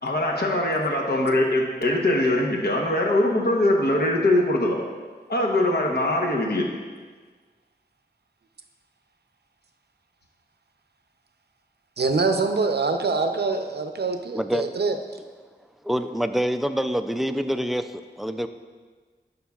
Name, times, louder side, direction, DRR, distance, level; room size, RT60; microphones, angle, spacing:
voice 1, 0.0-4.8 5.3-6.7, left 1 dB, 65° left, -1 dB, 0.9 m, -22 dB
voice 2, 12.0-15.0, right 4 dB, 65° right, 6 dB, 0.6 m, -24 dB
voice 3, 14.3-14.7 15.8-18.5, equal, ahead, 8 dB, 0.3 m, -26 dB
11.5 x 5.3 x 2.4 m, 1.5 s
wide cardioid pair, 50°, 18 cm